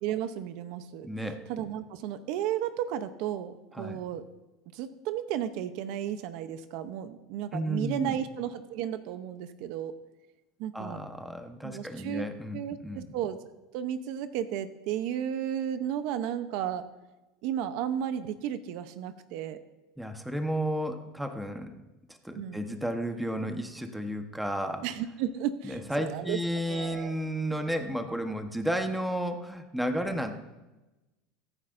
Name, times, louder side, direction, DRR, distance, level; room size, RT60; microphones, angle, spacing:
voice 1, 0.0-1.1 1.5-4.3 4.7-10.0 10.6-11.0 11.6-12.3 12.5-13.4 13.7-16.9 17.4-19.6 22.3-22.6 24.8-26.4 26.7-27.2, right 10 dB, 65° right, 11 dB, 0.7 m, -33 dB
voice 2, 1.0-1.4 3.7-4.0 7.5-8.2 10.7-12.6 12.8-13.1 20.0-21.8 22.1-24.8 25.6-30.3, equal, 5° right, 5 dB, 1.1 m, -32 dB
23.5 x 9.7 x 2.6 m, 1.1 s
supercardioid pair, 130°, 0 cm